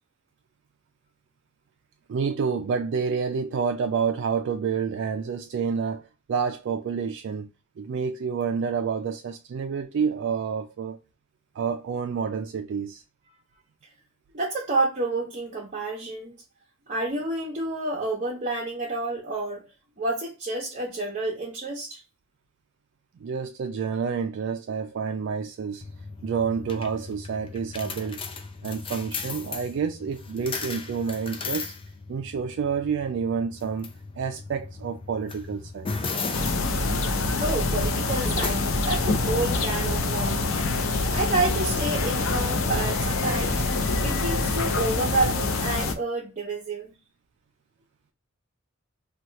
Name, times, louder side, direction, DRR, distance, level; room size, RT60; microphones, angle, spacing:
voice 1, 2.1-7.5 7.8-11.0 11.6-13.0 23.2-25.8 26.2-28.2 28.6-31.7 32.1-36.1, right 6 dB, 60° right, 0.3 m, -29 dB
voice 2, 14.3-16.4 16.9-19.6 20.0-22.0 37.4-40.4 41.1-43.6 44.0-46.9, right 2 dB, 40° right, 0.7 m, -29 dB
sound 1, 25.8-40.5, left 4 dB, 25° left, 0.4 m, -37 dB
sound 2, 36.3-45.9, left 3 dB, 85° left, 0.5 m, -25 dB
2.8 x 2.3 x 3.0 m
head